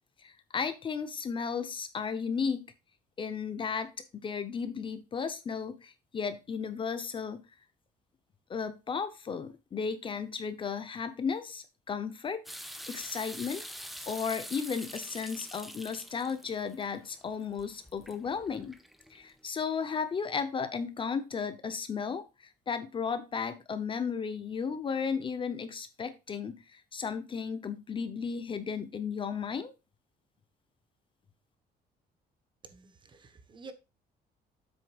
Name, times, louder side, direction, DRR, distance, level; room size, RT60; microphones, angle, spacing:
voice 1, 0.2-2.7 3.2-3.9 4.2-7.4 8.5-12.5 12.9-13.6 14.1-18.8 19.1-29.7, left 6 dB, 30° left, 0.8 m, -34 dB
sound 1, 12.5-19.3, equal, ahead, 0.9 m, -45 dB
voice 2, 32.6-33.7, right 4 dB, 30° right, 1.2 m, -50 dB
9.6 x 7.9 x 2.4 m
cardioid pair, 165°, 17 cm